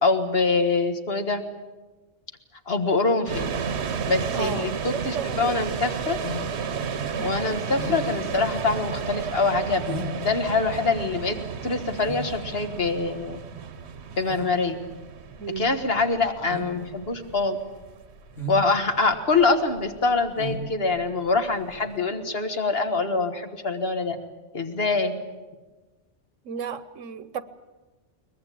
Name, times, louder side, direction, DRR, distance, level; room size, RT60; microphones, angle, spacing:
voice 1, 0.0-1.4 2.7-3.5 4.1-6.2 7.2-11.4 11.6-13.4 14.2-14.8 15.6-17.6 18.5-24.2 24.5-25.2, left 3 dB, 55° left, 1.8 m, -24 dB
sound 1, 3.2-20.2, right 6 dB, 65° right, 1.2 m, -33 dB
voice 2, 4.3-6.0 15.4-15.8 26.4-27.4, right 7 dB, 85° right, 1.3 m, -34 dB
sound 2, 5.6-21.9, left 1 dB, 85° left, 3.2 m, -39 dB
22.5 x 20.5 x 8.5 m
omnidirectional pair, 1.3 m